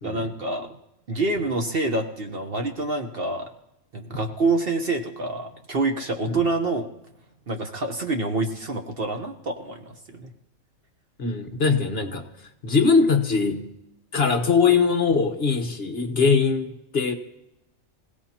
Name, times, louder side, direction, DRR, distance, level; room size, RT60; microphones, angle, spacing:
voice 1, 0.0-0.8 1.1-3.5 3.9-6.9 7.5-10.3, right 2 dB, 45° right, 5 dB, 1.2 m, -27 dB
voice 2, 11.2-12.3 12.6-13.7 14.1-17.1, left 5 dB, 50° left, 6 dB, 1.4 m, -21 dB
25.0 x 17.0 x 2.9 m, 0.89 s
omnidirectional pair, 1.4 m